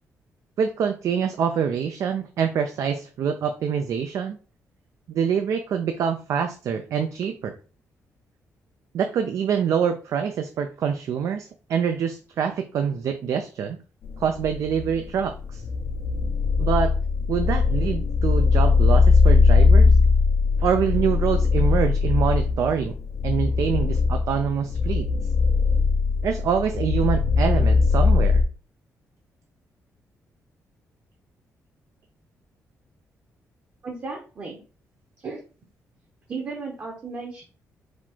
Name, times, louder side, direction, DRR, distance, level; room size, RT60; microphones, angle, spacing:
voice 1, 0.6-4.4 5.1-7.6 8.9-13.8 14.2-15.6 16.6-16.9 17.3-19.9 20.6-22.9 23.2-25.1 26.2-28.4, right 7 dB, 65° right, 7 dB, 0.4 m, -25 dB
sound 1, 14.0-28.4, left 4 dB, 50° left, 0.5 m, -20 dB
voice 2, 33.8-34.6 35.2-35.4 36.3-37.4, right 4 dB, 40° right, -1 dB, 0.9 m, -34 dB
4.3 x 2.3 x 4.4 m, 0.36 s
wide cardioid pair, 150°, 6 cm